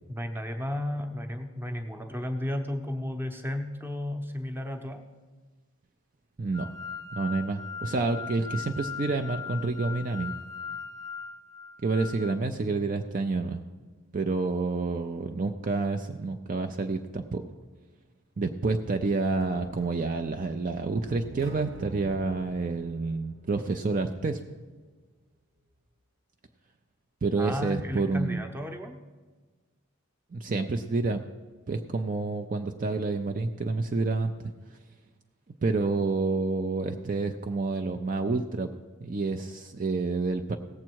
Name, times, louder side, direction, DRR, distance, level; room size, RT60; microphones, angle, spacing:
voice 1, 0.1-5.0 27.4-29.0, left 1 dB, 10° right, 6 dB, 0.8 m, -33 dB
voice 2, 6.4-6.7 7.1-10.3 11.8-13.6 14.1-17.4 18.4-24.4 27.2-28.4 30.3-31.2 31.7-34.3 34.7-34.8 35.6-38.7 39.0-40.6, right 3 dB, 40° right, 6 dB, 0.4 m, -29 dB
sound 1, 6.5-12.3, left 6 dB, 15° left, 0.9 m, -39 dB
sound 2, 19.4-24.3, right 1 dB, 55° right, 1.1 m, -47 dB
17.0 x 7.4 x 4.6 m, 1.3 s
head